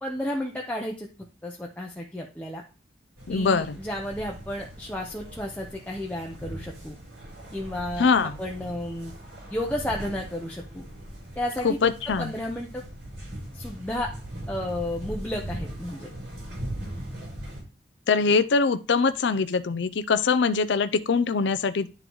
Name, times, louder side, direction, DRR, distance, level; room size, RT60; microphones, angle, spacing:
voice 1, 0.0-1.1 1.4-2.6 3.3-6.9 7.5-9.1 9.5-10.8 11.4-11.8 12.2-12.8 13.5-14.1 14.5-16.1, left 1 dB, 10° left, -1 dB, 0.7 m, -32 dB
sound 1, 3.2-17.6, right 1 dB, 75° right, 4.1 m, -40 dB
voice 2, 3.3-3.8 8.0-8.4 11.6-12.3 18.1-21.9, left 4 dB, 75° left, 13 dB, 0.5 m, -23 dB
11.0 x 3.8 x 3.1 m, 0.33 s
head